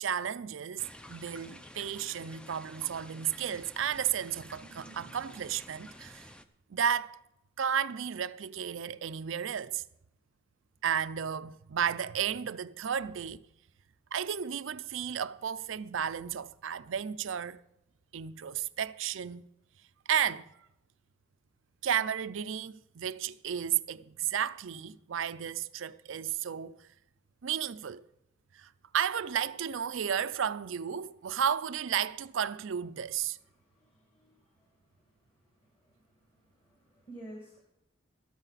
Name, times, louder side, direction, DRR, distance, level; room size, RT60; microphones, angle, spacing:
voice 1, 0.0-6.3 6.7-7.2 7.6-9.8 10.8-13.4 14.1-17.6 18.1-19.4 20.1-20.5 21.8-26.8 27.4-28.0 28.5-33.4, right 8 dB, 70° right, 0.5 m, -33 dB
sound 1, 0.8-6.4, equal, 5° left, 0.5 m, -50 dB
voice 2, 33.5-34.8 36.5-37.6, right 1 dB, 25° left, 2.0 m, -51 dB
14.0 x 13.0 x 4.1 m
head